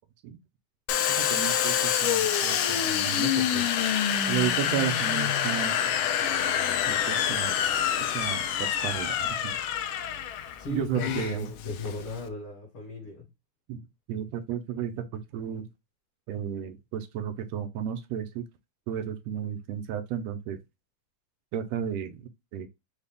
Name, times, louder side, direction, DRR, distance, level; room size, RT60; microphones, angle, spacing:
Domestic sounds home sounds, 0.9-12.3, left 9 dB, 80° left, 1.4 m, -27 dB
voice 1, 1.1-3.7 4.3-5.8 6.9-7.5 8.1-9.6 10.7-11.5 13.7-13.8 14.1-15.7 16.3-18.4 18.9-20.6 21.5-22.7, right 9 dB, 75° right, 1.7 m, -33 dB
voice 2, 10.6-13.3, left 3 dB, 55° left, 2.0 m, -36 dB
5.3 x 2.4 x 3.4 m
omnidirectional pair, 3.3 m